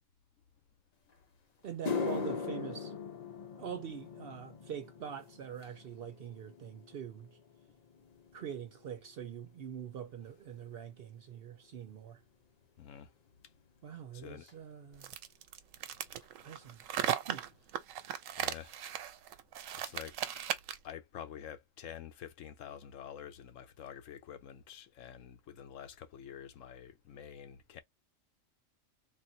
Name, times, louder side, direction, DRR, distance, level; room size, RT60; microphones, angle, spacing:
sound 1, 1.1-1.2 1.7-10.2 10.5-10.9 11.6-11.7 14.5-14.6 16.2-16.3 16.5-16.8 17.0-17.6 18.0-18.1 18.6-18.7, left 5 dB, 40° left, 0.7 m, -42 dB
voice 1, 1.6-2.9 3.6-7.3 8.3-12.2 13.8-15.1 16.4-16.8 17.3-17.4, right 8 dB, 65° right, 0.6 m, -44 dB
voice 2, 12.8-13.1 14.1-14.5 18.4-18.9 19.7-20.4 20.8-27.8, left 9 dB, 75° left, 1.0 m, -48 dB
sound 2, 15.0-20.9, right 10 dB, 85° right, 1.0 m, -37 dB
3.6 x 2.5 x 2.7 m
omnidirectional pair, 1.3 m